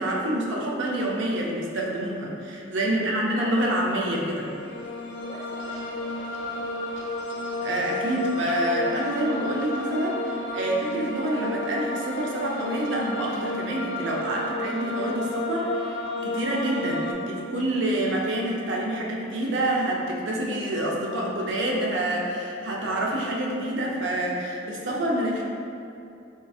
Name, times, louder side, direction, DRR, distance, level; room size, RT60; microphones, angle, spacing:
voice 1, 0.0-4.5 7.6-25.4, right 1 dB, 75° right, -2 dB, 0.4 m, -27 dB
voice 2, 2.8-3.4 5.0-6.8, right 1 dB, 15° left, -7 dB, 0.5 m, -44 dB
sound 1, 4.3-17.1, left 2 dB, 80° left, 0.6 m, -32 dB
3.7 x 2.5 x 2.3 m, 2.6 s
head